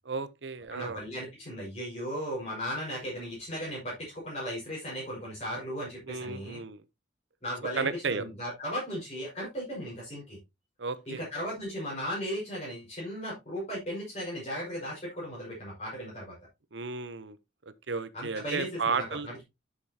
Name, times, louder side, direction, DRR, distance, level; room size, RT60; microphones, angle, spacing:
voice 1, 0.0-1.0 6.1-6.8 7.8-8.2 10.8-11.3 16.7-17.4 17.9-19.4, right 4 dB, 75° right, 0.9 m, -33 dB
voice 2, 0.7-6.6 7.4-10.4 11.1-16.3 18.1-19.4, equal, 35° left, 5.8 m, -36 dB
10.0 x 7.0 x 2.8 m
head